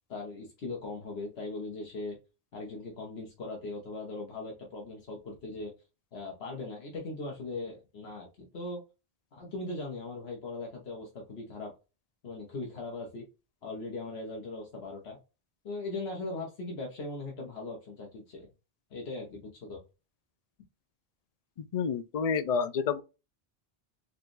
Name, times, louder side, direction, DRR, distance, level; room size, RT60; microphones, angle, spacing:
voice 1, 0.1-2.2 2.5-5.7 6.1-8.8 9.3-11.7 12.2-13.3 13.6-15.2 15.6-18.5 18.9-19.8, left 2 dB, 80° left, 1.3 m, -39 dB
voice 2, 21.6-23.0, left 6 dB, 55° left, 0.4 m, -29 dB
4.7 x 2.3 x 3.1 m
omnidirectional pair, 1.1 m